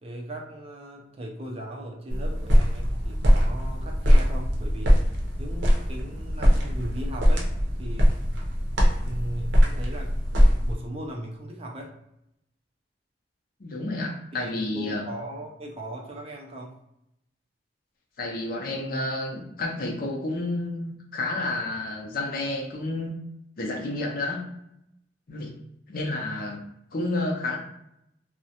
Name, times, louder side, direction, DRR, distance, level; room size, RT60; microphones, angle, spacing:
voice 1, 0.0-5.0 5.4-7.5 7.8-8.2 9.0-12.0 14.3-16.8 26.3-26.4, right 1 dB, 35° right, 0 dB, 0.4 m, -38 dB
sound 1, 2.1-10.7, equal, 80° right, 0.6 m, -22 dB
voice 2, 13.6-15.1 18.2-23.1 23.6-24.4 25.3-25.5 25.9-26.6 26.9-27.6, left 2 dB, 55° left, 0 dB, 0.5 m, -30 dB
2.3 x 2.1 x 2.7 m, 0.81 s
head